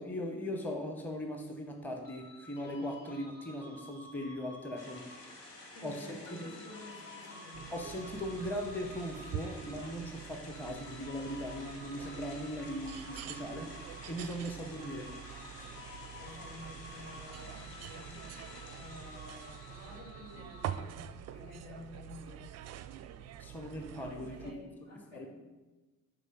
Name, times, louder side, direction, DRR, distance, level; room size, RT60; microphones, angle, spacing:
voice 1, 0.0-5.1 5.4-6.5 7.7-15.1 23.4-24.6 25.1-25.3, equal, 5° left, 3 dB, 0.8 m, -39 dB
sound 1, 2.0-5.4 6.2-10.0 10.5-14.4 14.7-21.0, left 1 dB, 45° left, 2.1 m, -53 dB
sound 2, 4.8-20.0, left 2 dB, 85° left, 0.9 m, -51 dB
voice 2, 5.7-7.8 16.0-18.4 18.7-20.9 21.3-23.1 24.2-25.3, left 2 dB, 65° left, -4 dB, 2.3 m, -51 dB
sound 3, 7.5-24.5, right 10 dB, 35° right, 0.4 m, -46 dB
6.6 x 5.3 x 5.1 m, 1.2 s
figure-of-eight pair, 45°, 46 cm